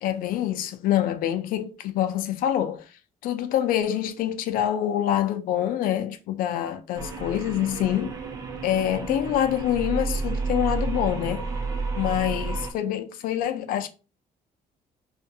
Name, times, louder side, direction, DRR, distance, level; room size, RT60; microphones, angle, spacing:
voice 1, 0.0-2.9 3.2-8.1 8.6-11.5 12.0-13.9, left 11 dB, 80° left, 0.4 m, -26 dB
sound 1, 7.0-12.7, right 4 dB, 25° right, 0.3 m, -31 dB
2.4 x 2.2 x 2.6 m
cardioid pair, 175°, 14 cm